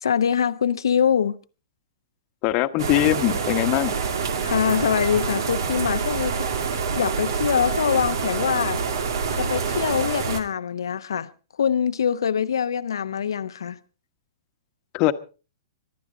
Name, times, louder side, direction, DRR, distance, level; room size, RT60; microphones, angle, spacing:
voice 1, 0.0-1.4 4.4-6.5 6.9-8.8 9.4-11.3 11.6-13.8, left 7 dB, 80° left, 0.9 m, -24 dB
voice 2, 2.4-4.0 14.9-15.1, left 16 dB, 40° left, 1.2 m, -21 dB
sound 1, 2.8-10.4, right 5 dB, 65° right, 2.2 m, -26 dB
24.5 x 12.0 x 3.8 m
hypercardioid pair, 120°, 2 cm